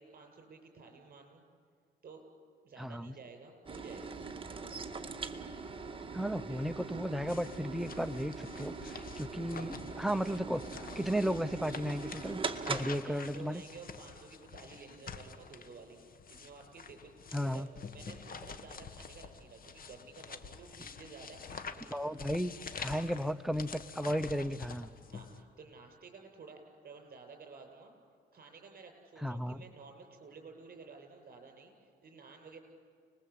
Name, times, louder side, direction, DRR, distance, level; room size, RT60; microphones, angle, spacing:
voice 1, 0.0-1.4 2.0-2.2 2.6-4.3 6.5-6.7 12.7-22.0 25.1-27.9 28.3-32.6, right 4 dB, 45° right, 4 dB, 7.5 m, -53 dB
voice 2, 2.8-3.1 6.1-10.6 10.9-12.4 12.7-13.6 17.3-17.7 21.9-24.9 29.2-29.6, equal, ahead, 11 dB, 0.8 m, -34 dB
sound 1, 3.7-12.9, right 4 dB, 25° right, 2.2 m, -42 dB
sound 2, 7.3-25.4, left 5 dB, 45° left, 1.9 m, -48 dB
30.0 x 21.5 x 8.6 m, 2.2 s
cardioid pair, 90°, 20 cm